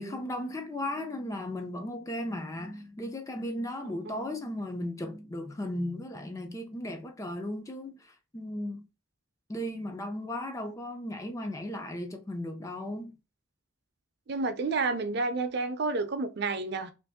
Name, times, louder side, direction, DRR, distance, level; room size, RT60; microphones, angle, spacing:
voice 1, 0.0-8.9 9.5-13.1, left 1 dB, 15° left, 0.4 m, -36 dB
voice 2, 14.3-16.9, right 3 dB, 55° right, 0.5 m, -30 dB
2.9 x 2.6 x 3.5 m
head